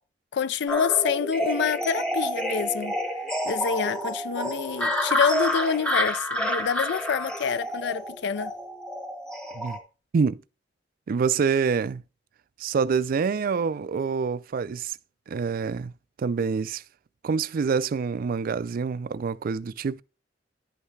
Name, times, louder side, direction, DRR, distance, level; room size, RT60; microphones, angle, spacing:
voice 1, 0.3-2.9 3.5-8.5, left 7 dB, 65° left, 0.4 m, -27 dB
sound 1, 0.7-9.8, left 1 dB, 5° left, 1.5 m, -29 dB
voice 2, 11.1-12.0 12.6-15.0 15.3-15.9 16.2-16.8 17.2-20.0, right 5 dB, 50° right, 0.4 m, -26 dB
11.0 x 5.6 x 3.2 m
head